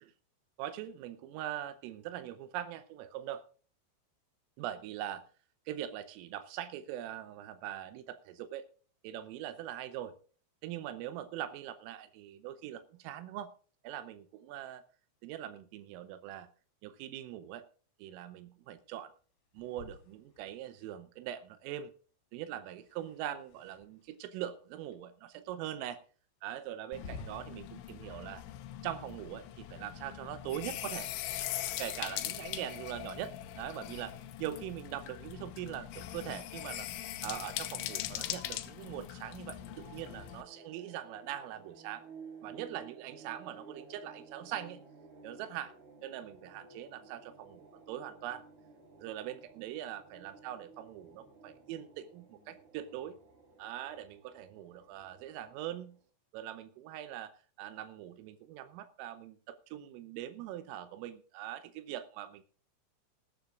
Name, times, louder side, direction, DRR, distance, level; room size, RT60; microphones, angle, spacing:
voice 1, 0.6-3.4 4.6-5.2 5.7-8.7 9.0-10.1 10.6-13.5 13.8-14.8 15.2-16.5 16.8-17.6 18.0-19.1 19.6-21.9 22.3-26.0 26.4-28.4 28.8-31.1 31.8-36.9 37.2-42.0 42.4-44.8 45.2-45.7 46.0-48.4 49.0-53.2 53.6-56.0 56.3-57.3 57.6-62.4, right 11 dB, 85° right, 11 dB, 3.4 m, -42 dB
sound 1, 19.5-20.9 22.7-24.2 24.9-25.0 25.7-25.8 26.9-27.7, left 4 dB, 55° left, 3.9 m, -51 dB
sound 2, 26.9-40.4, left 13 dB, 75° left, 3.1 m, -41 dB
sound 3, 39.4-56.0, right 4 dB, 65° right, 6.0 m, -55 dB
20.0 x 11.5 x 2.4 m, 0.41 s
omnidirectional pair, 5.9 m